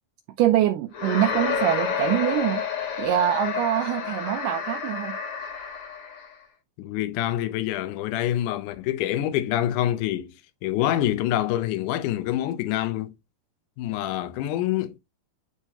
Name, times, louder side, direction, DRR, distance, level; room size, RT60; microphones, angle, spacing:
voice 1, 0.4-2.6 3.0-5.2, right 13 dB, 85° right, 1.9 m, -24 dB
sound 1, 0.9-6.3, left 6 dB, 50° left, 1.8 m, -29 dB
voice 2, 6.8-10.3 10.6-13.1 13.8-15.0, left 13 dB, 70° left, 2.0 m, -26 dB
9.9 x 4.4 x 2.9 m
omnidirectional pair, 4.3 m